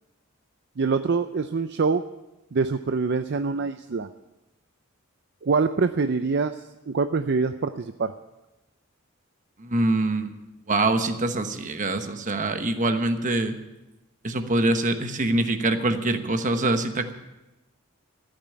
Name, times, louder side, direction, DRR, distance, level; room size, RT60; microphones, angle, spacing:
voice 1, 0.8-2.0 2.5-4.1 5.4-6.6 6.9-8.1, right 4 dB, 55° right, 10 dB, 0.5 m, -24 dB
voice 2, 9.6-10.3 10.7-13.6 14.2-17.1, right 2 dB, 35° right, 7 dB, 1.1 m, -24 dB
14.5 x 9.1 x 8.6 m, 1.0 s
head